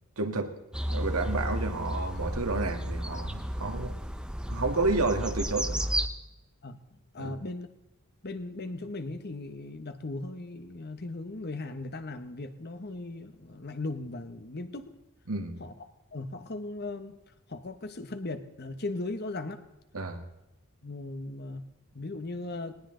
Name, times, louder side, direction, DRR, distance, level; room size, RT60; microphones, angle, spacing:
voice 1, 0.2-0.5 0.9-4.0 4.5-5.9 7.2-7.4 15.3-15.6 19.9-20.2, right 3 dB, 85° right, 5 dB, 1.9 m, -30 dB
sound 1, 0.7-6.1, equal, 5° right, 0.9 m, -32 dB
voice 2, 7.1-7.7 8.2-14.9 15.6-15.7 16.1-17.2 17.5-19.6 20.8-22.8, left 2 dB, 45° left, 9 dB, 1.2 m, -38 dB
20.0 x 19.0 x 3.9 m, 0.98 s
head